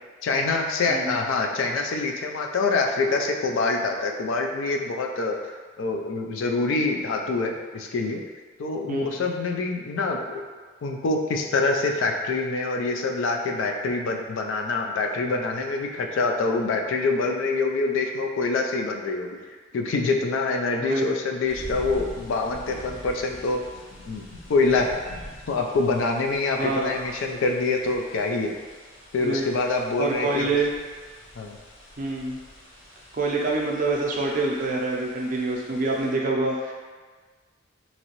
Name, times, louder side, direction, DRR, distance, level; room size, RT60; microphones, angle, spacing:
voice 1, 0.2-5.4 5.8-8.2 8.6-10.4 10.8-19.4 19.7-23.6 24.1-24.9 25.5-28.5 29.1-30.5 31.4-31.6, left 3 dB, 70° left, 2 dB, 0.3 m, -25 dB
voice 2, 8.9-9.3 20.8-21.1 26.6-26.9 29.2-29.5 30.0-30.7 32.0-32.4 33.1-36.7, right 3 dB, 40° right, -2 dB, 0.5 m, -26 dB
sound 1, 21.5-36.1, equal, 90° left, 0.8 m, -45 dB
2.9 x 2.7 x 2.9 m, 1.4 s
head